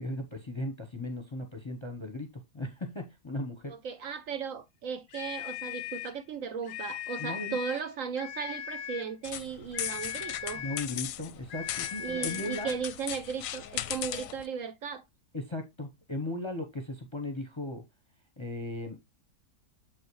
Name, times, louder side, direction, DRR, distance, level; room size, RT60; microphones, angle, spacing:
voice 1, 0.0-3.8 7.2-7.6 10.5-12.7 15.3-17.8 18.4-19.1, left 1 dB, 25° left, 0.7 m, -37 dB
voice 2, 3.7-10.6 12.0-15.0, right 6 dB, 65° right, 1.0 m, -36 dB
sound 1, 5.1-6.2 6.6-7.9 8.2-9.1 9.7-11.0 11.5-12.8, left 11 dB, 90° left, 1.2 m, -39 dB
sound 2, 9.2-14.5, left 12 dB, 70° left, 0.9 m, -37 dB
7.3 x 5.5 x 3.1 m
omnidirectional pair, 1.7 m